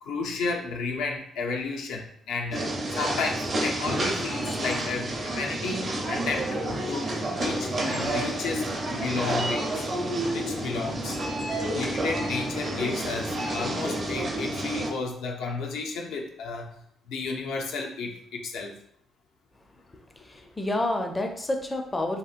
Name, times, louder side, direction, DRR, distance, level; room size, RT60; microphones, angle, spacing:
voice 1, 0.0-2.7 2.9-6.6 6.9-9.8 10.3-11.2 11.6-16.8 17.1-18.7, left 4 dB, 90° left, 1 dB, 0.5 m, -32 dB
sound 1, 2.5-14.9, right 1 dB, 40° right, 0.6 m, -29 dB
voice 2, 19.9-22.2, left 1 dB, 20° left, 4 dB, 0.4 m, -29 dB
2.9 x 2.8 x 2.4 m, 0.67 s
cardioid pair, 90°, 0 cm